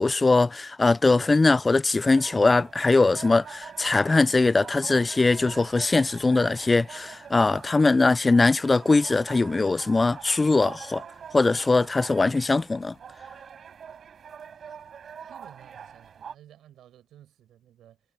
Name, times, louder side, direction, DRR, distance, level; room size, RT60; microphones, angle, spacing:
voice 1, 0.0-11.0 11.3-12.9, left 3 dB, 35° left, 0.5 m, -21 dB
sound 1, 2.1-16.3, right 7 dB, 70° right, 7.9 m, -44 dB
voice 2, 15.3-18.0, right 11 dB, 90° right, 6.0 m, -53 dB
supercardioid pair, 45°, 0 cm